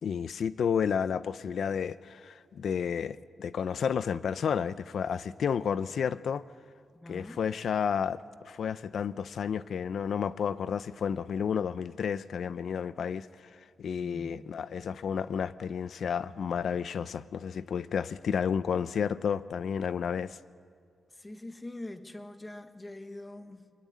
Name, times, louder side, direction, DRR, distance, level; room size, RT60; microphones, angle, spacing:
voice 1, 0.0-6.4 7.1-20.4, left 7 dB, 60° left, 0.6 m, -31 dB
voice 2, 7.0-7.4 14.0-14.6 21.2-23.7, left 1 dB, 15° left, 1.2 m, -44 dB
23.0 x 22.0 x 9.5 m
wide cardioid pair, 170°, 0 cm